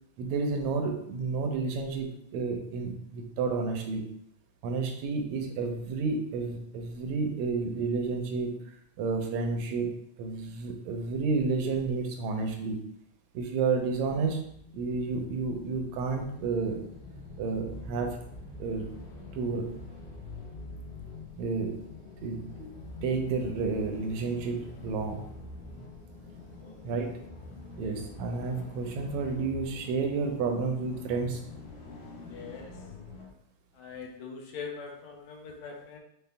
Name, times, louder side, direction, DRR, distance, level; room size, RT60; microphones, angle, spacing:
voice 1, 0.2-4.0 4.6-8.5 9.0-9.9 10.2-12.8 13.3-14.4 14.7-16.8 17.4-18.2 18.6-18.9 19.3-19.7 21.3-21.8 22.2-22.7 23.0-25.2 26.8-27.2 27.8-31.4, right 4 dB, 80° right, 3 dB, 1.6 m, -31 dB
sound 1, 13.8-33.3, left 3 dB, 60° left, 1.5 m, -45 dB
voice 2, 32.2-32.8 33.7-36.0, left 5 dB, 80° left, 1 dB, 1.6 m, -42 dB
5.5 x 2.1 x 3.3 m, 0.72 s
omnidirectional pair, 3.6 m